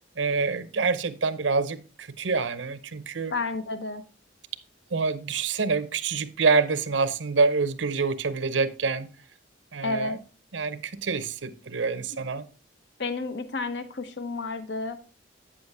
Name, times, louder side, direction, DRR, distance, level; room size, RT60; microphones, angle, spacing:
voice 1, 0.2-3.3 4.9-9.1 9.7-10.2 10.5-12.4, right 4 dB, 80° right, 0.7 m, -26 dB
voice 2, 3.3-4.0 9.8-10.2 12.1-12.2 13.0-15.0, left 3 dB, 65° left, 0.8 m, -31 dB
8.6 x 6.9 x 3.4 m
head